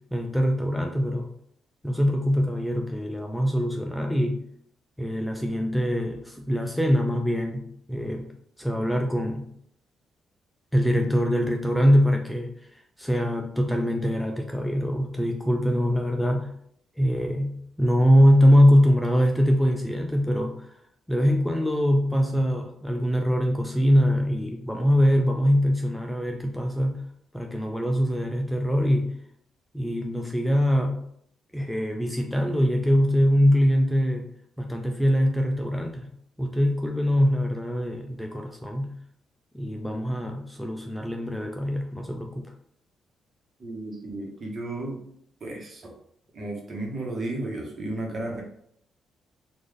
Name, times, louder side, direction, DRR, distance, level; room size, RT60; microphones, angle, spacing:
voice 1, 0.0-1.3 1.8-4.4 5.0-8.3 8.6-9.5 10.7-16.5 17.0-20.7 21.1-27.0 27.3-29.1 29.7-31.0 31.5-34.3 34.6-36.1 36.4-38.9 39.5-42.5, equal, 5° left, 2 dB, 0.4 m, -23 dB
voice 2, 43.6-45.0 45.4-45.9 46.3-48.4, right 2 dB, 45° right, 0 dB, 1.1 m, -33 dB
3.2 x 2.5 x 3.7 m, 0.69 s
cardioid pair, 95°, 0 cm